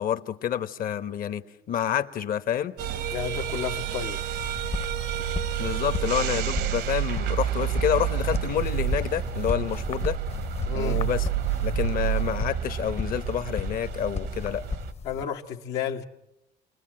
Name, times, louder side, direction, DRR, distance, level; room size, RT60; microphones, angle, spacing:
voice 1, 0.0-2.8 5.6-10.2 10.7-11.3 11.6-14.6, left 10 dB, 55° left, 1.1 m, -28 dB
sound 1, 2.8-14.9, right 12 dB, 75° right, 1.0 m, -29 dB
voice 2, 3.1-4.2 10.6-11.1 15.0-16.0, left 8 dB, 85° left, 1.5 m, -32 dB
sound 2, 4.3-15.2, left 5 dB, 40° left, 0.8 m, -35 dB
29.5 x 20.5 x 7.6 m
cardioid pair, 110°, 17 cm